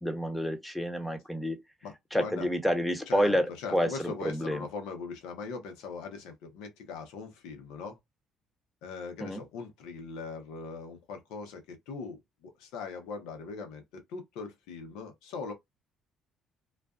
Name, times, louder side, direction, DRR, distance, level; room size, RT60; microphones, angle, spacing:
voice 1, 0.0-1.6 2.1-4.6 9.2-9.4, equal, 5° left, 0.9 m, -29 dB
voice 2, 1.8-2.5 3.1-8.0 8.8-15.5, left 4 dB, 80° left, 0.9 m, -40 dB
2.5 x 2.3 x 2.3 m
supercardioid pair, 65°, 0 cm